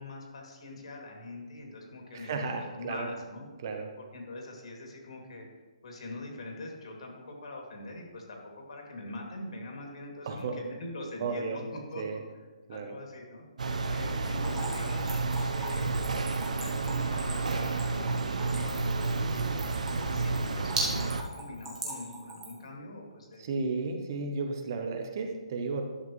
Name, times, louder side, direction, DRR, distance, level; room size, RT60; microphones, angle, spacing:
voice 1, 0.0-3.4 4.1-5.5 5.8-11.6 11.9-12.0 12.7-13.4 13.9-16.0 16.6-23.5, left 2 dB, 60° left, 1 dB, 2.4 m, -43 dB
voice 2, 2.1-3.1 3.6-3.9 10.3-10.6 11.2-11.6 12.0-12.2 12.7-13.0 23.4-25.8, right 4 dB, 30° right, 4 dB, 0.8 m, -33 dB
sound 1, 13.6-21.2, right 3 dB, 90° right, 0.8 m, -31 dB
Splash splatter / Trickle dribble, 14.3-22.7, right 2 dB, 10° right, 1.2 m, -39 dB
11.5 x 7.2 x 3.1 m, 1.2 s
hypercardioid pair, 170°, 4 cm